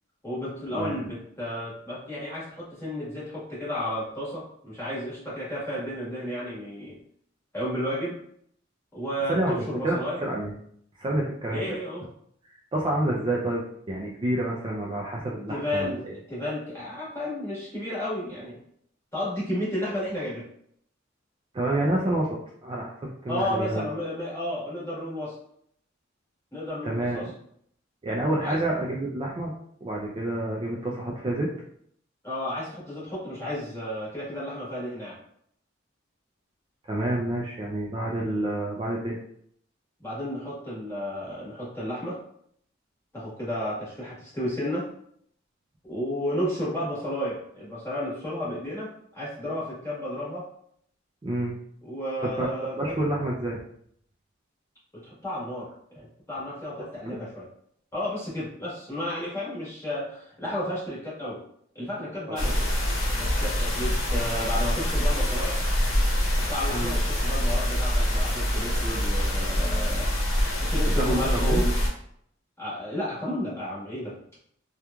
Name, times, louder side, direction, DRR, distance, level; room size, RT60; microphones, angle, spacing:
voice 1, 0.2-7.0 7.5-8.2 8.9-10.2 11.5-12.0 15.5-18.6 19.1-20.4 23.3-25.3 26.5-27.3 28.4-28.6 32.2-35.2 40.0-42.2 43.1-44.9 45.8-50.5 51.8-52.9 55.0-57.5 57.9-61.4 61.7-62.7 63.2-65.6 66.3-70.1 70.6-71.8 72.6-74.1, left 1 dB, 15° left, -8 dB, 1.2 m, -32 dB
voice 2, 9.3-10.5 11.0-11.6 12.7-16.1 21.5-23.8 26.8-27.2 28.0-29.5 29.8-31.5 36.8-39.2 51.2-51.6 52.2-52.5 52.8-53.6 62.3-62.5 66.7-66.9 71.0-71.6, right 1 dB, 25° right, -3 dB, 0.3 m, -28 dB
sound 1, 62.4-71.9, equal, 85° left, 0.8 m, -25 dB
2.9 x 2.3 x 2.2 m, 0.67 s
head